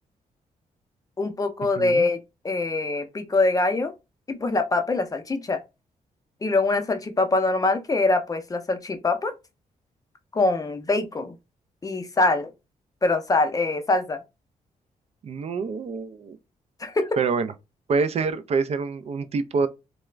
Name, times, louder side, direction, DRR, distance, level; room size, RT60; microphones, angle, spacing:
voice 1, 1.2-2.2 2.4-3.9 4.3-5.6 6.4-9.3 10.3-11.4 11.8-12.5 13.0-14.2 16.8-17.1, left 2 dB, 25° left, 0.5 m, -23 dB
voice 2, 1.8-2.1 15.2-16.4 17.2-17.5 17.9-19.7, right 5 dB, 45° right, 0.4 m, -26 dB
2.3 x 2.0 x 3.1 m
cardioid pair, 85°, 14 cm